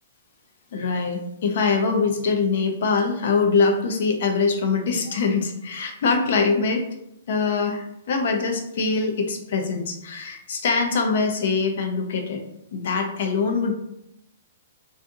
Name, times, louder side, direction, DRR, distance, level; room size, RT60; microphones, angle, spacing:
voice 1, 0.7-6.8 7.3-12.4 12.7-13.7, left 4 dB, 50° left, 4 dB, 0.5 m, -23 dB
2.6 x 2.5 x 3.7 m, 0.79 s
hypercardioid pair, 175°, 0 cm